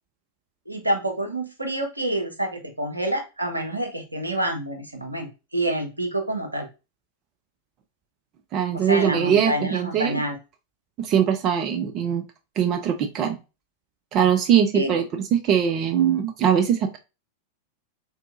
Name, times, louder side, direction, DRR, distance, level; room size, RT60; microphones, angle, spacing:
voice 1, 0.7-6.7 8.7-10.4 14.7-15.0, right 1 dB, 85° right, 3 dB, 0.7 m, -27 dB
voice 2, 8.5-10.2 11.0-12.2 12.6-13.4 14.1-17.0, right 8 dB, 35° right, 6 dB, 0.3 m, -21 dB
3.5 x 2.5 x 2.4 m, 0.28 s
figure-of-eight pair, 90°, 0 cm